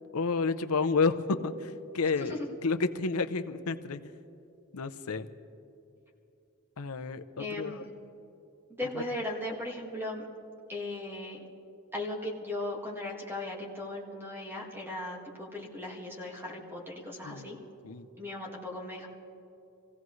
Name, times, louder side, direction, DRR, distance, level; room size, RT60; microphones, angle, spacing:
voice 1, 0.1-1.7 1.9-4.0 4.7-5.3 6.8-7.8 17.2-17.5 17.8-18.1, left 4 dB, 70° left, 10 dB, 0.7 m, -30 dB
voice 2, 7.4-7.9 8.8-10.3 10.7-11.4 11.9-17.6 18.2-19.1, left 1 dB, 10° right, -1 dB, 1.8 m, -37 dB
26.5 x 16.0 x 3.2 m, 2.7 s
head